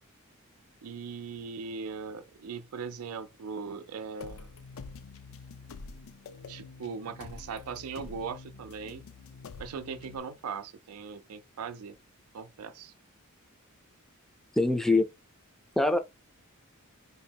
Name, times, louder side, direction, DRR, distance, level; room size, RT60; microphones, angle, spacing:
voice 1, 0.8-4.5 6.5-9.1 9.6-11.9 12.3-12.9, right 5 dB, 85° right, 0.4 m, -39 dB
sound 1, 4.2-10.2, left 4 dB, 65° left, 0.4 m, -47 dB
voice 2, 14.6-15.1 15.8-16.0, left 2 dB, ahead, 0.4 m, -23 dB
2.9 x 2.7 x 4.4 m
head